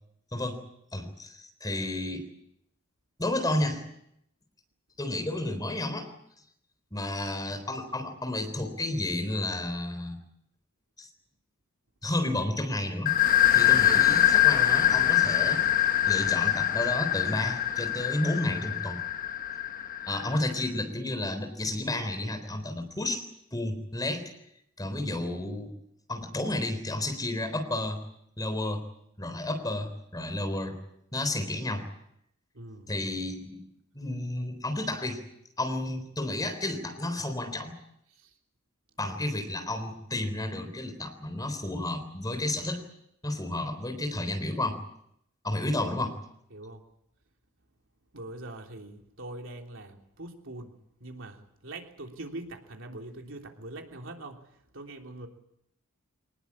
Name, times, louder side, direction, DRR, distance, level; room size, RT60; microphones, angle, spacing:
voice 1, 0.3-0.6 0.9-2.3 3.2-3.8 5.0-6.1 6.9-10.2 11.0-11.1 12.0-13.2 13.5-15.6 16.1-19.0 20.1-23.2 23.5-24.3 24.8-25.7 26.1-28.0 28.4-28.8 29.2-30.8 31.1-31.9 32.9-33.6 33.9-35.2 35.6-37.8 39.0-42.8 43.2-44.8 45.4-46.2, left 1 dB, 20° left, 7 dB, 3.8 m, -31 dB
sound 1, 13.1-20.5, left 12 dB, 40° left, 1.2 m, -24 dB
voice 2, 32.5-32.9 38.1-38.3 46.5-46.8 48.1-55.3, right 2 dB, 65° right, 2 dB, 3.4 m, -43 dB
24.5 x 20.0 x 8.6 m, 0.77 s
head